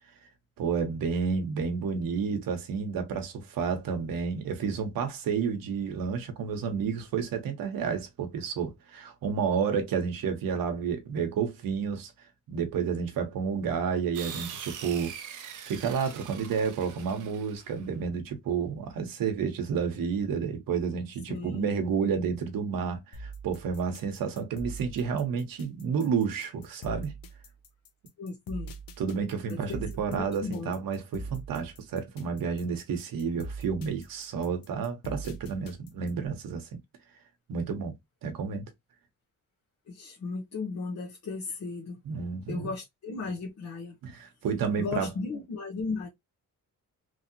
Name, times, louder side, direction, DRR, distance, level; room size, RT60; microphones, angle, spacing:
voice 1, 0.6-12.1 12.5-15.1 15.7-27.1 29.0-36.7 37.5-37.9 38.2-38.6 42.0-42.7 44.0-45.1, right 6 dB, 80° right, 0.9 m, -30 dB
sound 1, 14.1-17.8, right 8 dB, 60° right, 0.6 m, -42 dB
voice 2, 21.3-21.7 28.2-28.7 29.5-29.8 30.1-30.7 39.9-42.0 42.5-44.0 44.8-46.1, left 4 dB, 50° left, 0.9 m, -35 dB
sound 2, 23.1-36.3, right 2 dB, 80° left, 0.8 m, -42 dB
3.1 x 2.7 x 2.7 m
wide cardioid pair, 150°, 34 cm